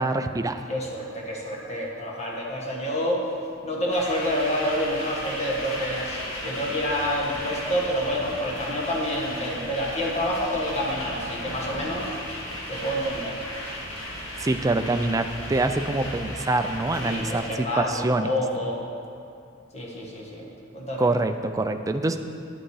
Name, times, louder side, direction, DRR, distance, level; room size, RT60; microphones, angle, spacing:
voice 1, 0.0-0.6 14.4-18.3 21.0-22.2, right 2 dB, 15° right, 7 dB, 0.4 m, -25 dB
voice 2, 0.7-3.3 3.6-12.1 12.7-13.4 17.0-18.9 19.7-20.5 20.7-21.1, equal, 35° left, -2 dB, 1.5 m, -28 dB
sound 1, 3.9-17.5, left 1 dB, 75° left, 2.0 m, -35 dB
10.0 x 9.0 x 4.8 m, 2.5 s
head